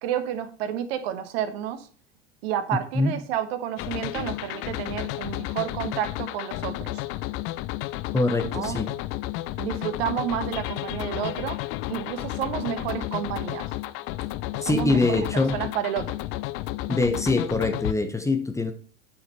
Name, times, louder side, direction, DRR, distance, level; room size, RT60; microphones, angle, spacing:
voice 1, 0.0-1.9 2.4-6.9 8.4-8.8 9.6-11.6 11.9-13.7 14.5-15.3 15.5-16.2, right 10 dB, 55° right, 11 dB, 1.3 m, -30 dB
sound 1, 3.8-17.9, left 17 dB, 35° left, 0.5 m, -32 dB
voice 2, 8.1-8.9 14.6-15.6 16.9-18.7, left 2 dB, 10° left, 7 dB, 1.0 m, -23 dB
9.3 x 5.8 x 4.3 m, 0.43 s
figure-of-eight pair, 90°, 37 cm